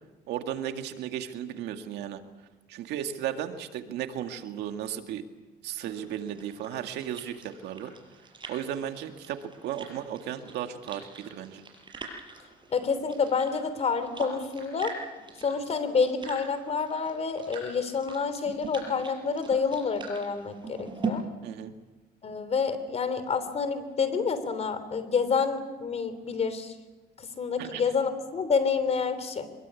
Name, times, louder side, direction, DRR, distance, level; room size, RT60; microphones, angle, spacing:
voice 1, 0.3-2.2 2.7-5.2 5.6-7.9 8.5-11.6 21.4-21.7 27.6-27.8, right 10 dB, 80° right, 6 dB, 2.1 m, -35 dB
sound 1, 5.8-21.1, right 5 dB, 30° right, 6.1 m, -43 dB
voice 2, 12.7-14.9 15.4-21.2 22.2-26.7 27.2-29.5, left 5 dB, 40° left, 12 dB, 3.5 m, -28 dB
24.5 x 22.5 x 8.5 m, 1.2 s
cardioid pair, 110°, 17 cm